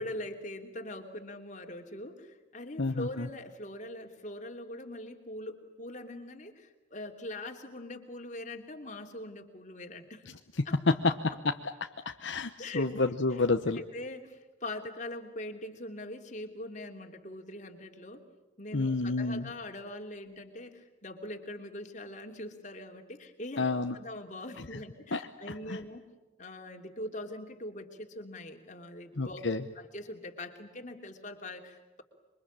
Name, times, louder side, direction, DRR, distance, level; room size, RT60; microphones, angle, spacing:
voice 1, 0.0-10.2 10.6-10.8 12.6-12.9 13.7-18.2 18.6-23.7 23.9-26.1 26.4-29.5 29.7-32.0, left 1 dB, 40° left, 4 dB, 3.0 m, -42 dB
voice 2, 2.8-3.3 10.9-11.0 11.8-13.8 18.7-19.5 23.6-23.9 25.1-25.2 25.7-25.8 29.2-29.6, left 3 dB, 70° left, 7 dB, 1.0 m, -29 dB
27.5 x 24.0 x 8.8 m, 1.1 s
head